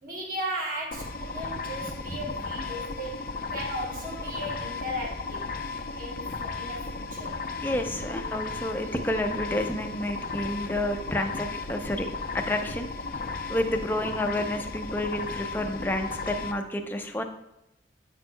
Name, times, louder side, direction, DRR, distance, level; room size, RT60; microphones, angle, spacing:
voice 1, 0.0-5.4 6.0-7.4, equal, 50° right, -2 dB, 1.5 m, -36 dB
sound 1, 0.9-16.5, left 3 dB, 50° left, 0.5 m, -35 dB
voice 2, 7.6-12.1 12.3-12.9 13.5-17.2, left 1 dB, 10° left, 4 dB, 0.5 m, -30 dB
9.1 x 6.1 x 2.2 m, 0.89 s
head